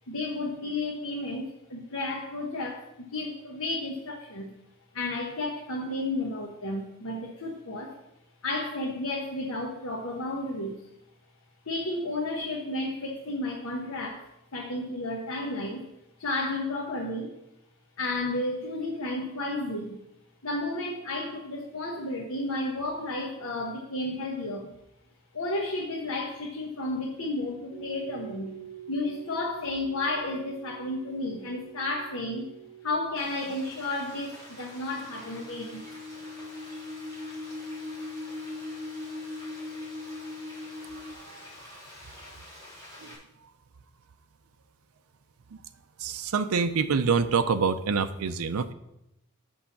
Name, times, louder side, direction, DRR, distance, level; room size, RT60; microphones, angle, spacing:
voice 1, 0.1-4.5 4.9-8.0 8.4-10.9 11.6-15.9 16.2-17.3 18.0-20.0 20.4-24.7 25.3-28.5 28.9-32.5 32.8-35.8, left 2 dB, 75° left, -1 dB, 1.2 m, -32 dB
sound 1, 27.7-33.2 34.7-41.1, left 1 dB, 55° right, 1.4 m, -41 dB
Frying (food), 33.2-43.2, left 1 dB, 20° left, 3.7 m, -48 dB
voice 2, 46.0-48.7, right 5 dB, 90° right, 9 dB, 0.5 m, -26 dB
6.4 x 5.6 x 7.2 m, 0.86 s
head